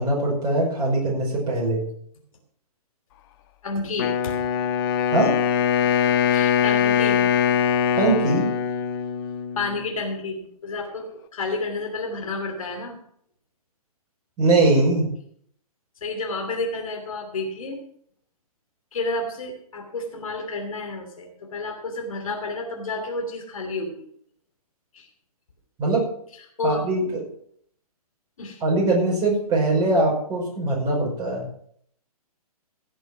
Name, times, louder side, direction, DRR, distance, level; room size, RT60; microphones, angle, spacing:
voice 1, 0.0-1.8 5.1-5.3 8.0-8.5 14.4-15.1 25.8-26.0 26.6-27.1 28.6-31.5, right 2 dB, 20° right, -2 dB, 5.4 m, -21 dB
voice 2, 3.6-4.4 6.3-7.2 9.6-13.0 16.0-17.8 18.9-24.0 24.9-25.1 26.6-26.8 28.4-28.6, left 3 dB, 60° left, 4 dB, 3.0 m, -30 dB
Wind instrument woodwind instrument, 4.0-9.9, left 8 dB, 35° left, 1.3 m, -22 dB
16.5 x 6.6 x 6.0 m, 0.64 s
figure-of-eight pair, 125°, 19 cm